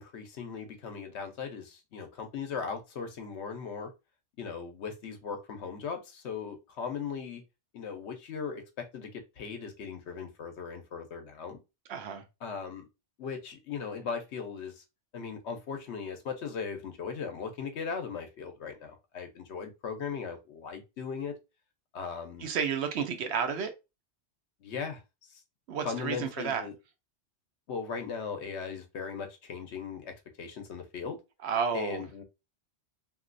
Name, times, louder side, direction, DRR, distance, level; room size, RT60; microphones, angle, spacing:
voice 1, 0.0-3.9 4.4-7.4 7.7-11.6 12.4-12.9 13.2-14.8 15.1-21.3 21.9-22.5 24.6-25.0 25.3-25.4 25.8-26.7 27.7-31.2 31.7-32.2, left 6 dB, 75° left, 1.0 m, -38 dB
voice 2, 11.9-12.2 22.4-23.7 25.7-26.7 31.4-32.0, right 6 dB, 70° right, 0.9 m, -31 dB
2.9 x 2.7 x 2.5 m
omnidirectional pair, 1.2 m